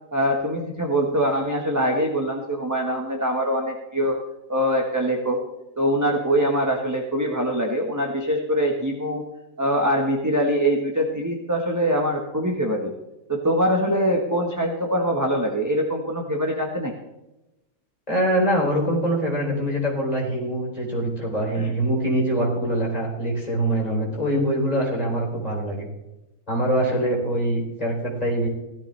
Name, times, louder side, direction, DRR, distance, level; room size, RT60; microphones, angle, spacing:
voice 1, 0.1-4.2 4.5-5.4 5.8-9.2 9.6-12.9 13.3-16.9 21.5-21.7, equal, 10° right, 1 dB, 1.3 m, -23 dB
voice 2, 18.1-25.9 26.5-28.5, right 1 dB, 25° left, -2 dB, 4.0 m, -24 dB
16.0 x 13.5 x 3.3 m, 0.98 s
omnidirectional pair, 1.6 m